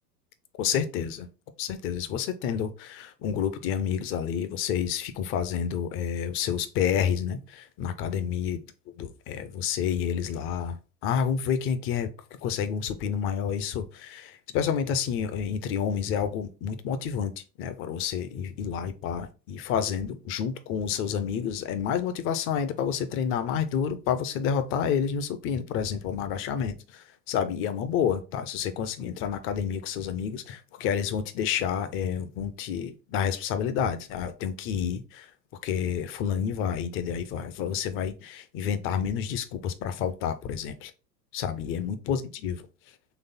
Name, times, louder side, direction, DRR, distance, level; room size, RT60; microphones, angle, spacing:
voice 1, 0.6-1.3 1.6-8.6 9.0-10.8 11.0-35.3 35.6-40.9 41.3-42.7, left 8 dB, 30° left, 0.5 m, -29 dB
4.0 x 3.2 x 3.9 m
hypercardioid pair, 100°, 49 cm